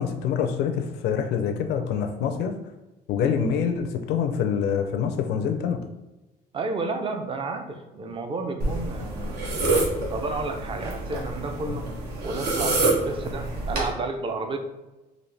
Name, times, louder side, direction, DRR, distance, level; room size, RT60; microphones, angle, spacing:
voice 1, 0.0-2.6 3.1-5.8 8.6-8.7 11.6-11.7, left 7 dB, 80° left, 5 dB, 0.5 m, -26 dB
voice 2, 6.5-9.4 10.1-11.9 12.2-14.6, right 3 dB, 30° right, 6 dB, 0.5 m, -31 dB
sound 1, 8.6-13.9, right 2 dB, 75° right, 1.1 m, -27 dB
4.0 x 2.6 x 3.3 m, 1.1 s
cardioid pair, 110°, 17 cm